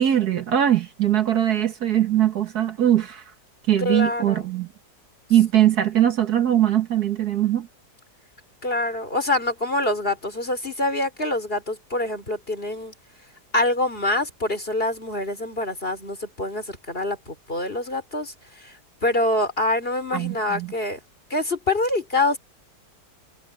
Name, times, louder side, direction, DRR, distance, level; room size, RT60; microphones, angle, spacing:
voice 1, 0.0-3.2 3.7-4.7 5.3-7.7 20.1-20.7, right 11 dB, 65° right, 1.9 m, -21 dB
voice 2, 3.8-4.5 8.6-12.9 13.5-21.0 21.3-22.4, left 2 dB, 35° left, 4.4 m, -25 dB
omnidirectional pair, 1.8 m